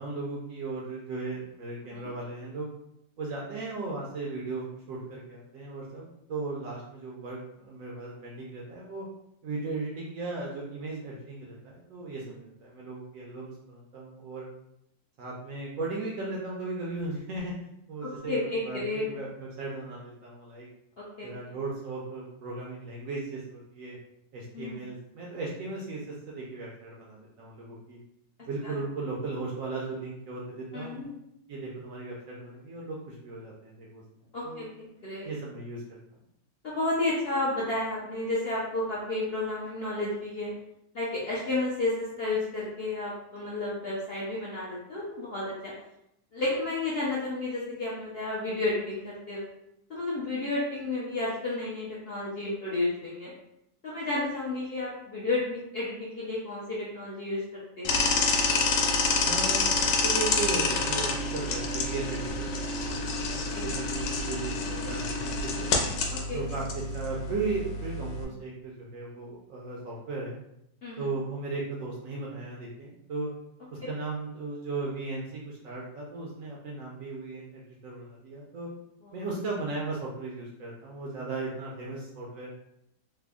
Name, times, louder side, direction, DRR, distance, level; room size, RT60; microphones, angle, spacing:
voice 1, 0.0-2.7 3.2-9.1 9.4-14.5 15.2-17.5 17.9-20.7 21.2-24.0 24.3-28.0 28.4-31.0 31.5-34.0 34.4-34.6 35.2-36.0 59.2-65.7 66.3-70.4 71.0-73.3 73.7-78.7 79.1-82.5, right 3 dB, 70° right, -3 dB, 0.8 m, -36 dB
voice 2, 18.0-19.1 21.0-21.3 24.5-24.9 28.6-28.8 30.7-31.1 34.3-35.3 36.6-40.5 40.9-45.7 46.3-49.5 49.9-53.3 53.8-57.4 57.8-58.0 63.5-63.6 66.1-66.6 70.8-71.0 79.0-79.1, left 2 dB, 70° left, -6 dB, 0.5 m, -32 dB
sound 1, 57.8-68.2, left 3 dB, 85° left, 1.3 m, -28 dB
3.4 x 2.0 x 3.5 m, 0.80 s
omnidirectional pair, 1.9 m